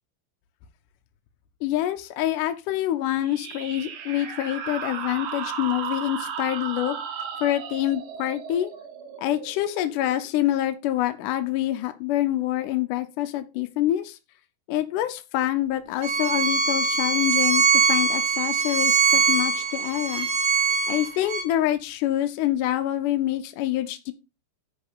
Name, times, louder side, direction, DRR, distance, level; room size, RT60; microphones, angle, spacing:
voice 1, 1.6-7.0 7.4-8.7 9.2-14.2 14.7-17.6 17.9-20.3 20.9-24.1, left 13 dB, 70° left, 8 dB, 2.1 m, -26 dB
sound 1, 3.2-10.4, right 7 dB, 80° right, 1.2 m, -35 dB
Bowed string instrument, 16.0-21.4, right 4 dB, 45° right, 2.2 m, -22 dB
10.5 x 4.2 x 5.6 m, 0.27 s
omnidirectional pair, 4.2 m